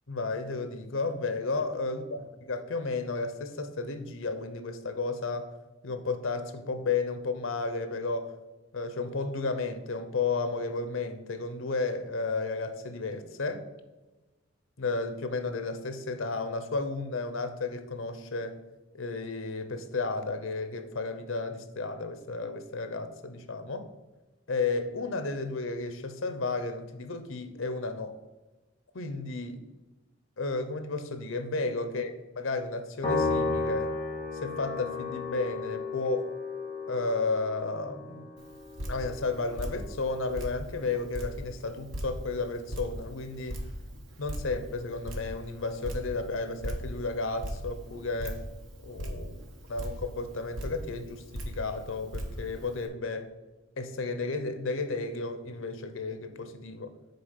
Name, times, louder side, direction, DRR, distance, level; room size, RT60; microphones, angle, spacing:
voice 1, 0.1-2.2 2.5-5.5 5.8-8.3 8.7-13.6 14.8-18.6 18.9-23.9 24.5-28.2 28.9-29.6 30.4-33.9 34.4-36.3 36.9-38.3 38.9-43.6 44.2-48.4 48.8-49.4 49.7-53.3 53.8-56.9, left 3 dB, 85° left, 9 dB, 0.8 m, -33 dB
Piano, 33.0-39.6, left 3 dB, 20° left, 2.1 m, -33 dB
Drip, 38.4-52.9, equal, 90° right, 1.4 m, -40 dB
6.8 x 4.4 x 6.6 m, 1.2 s
head